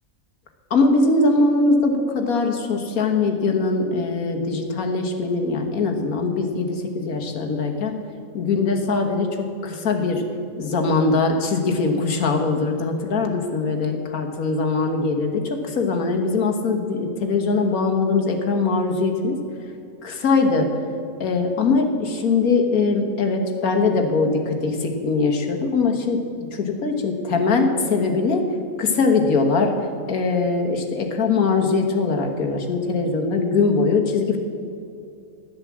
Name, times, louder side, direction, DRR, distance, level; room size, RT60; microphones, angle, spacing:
voice 1, 0.7-8.0 8.3-10.2 10.6-19.4 20.0-20.7 21.2-26.2 26.5-28.4 28.8-29.7 30.1-34.4, left 3 dB, 85° left, 3 dB, 1.9 m, -21 dB
12.0 x 9.9 x 7.3 m, 2.6 s
omnidirectional pair, 1.5 m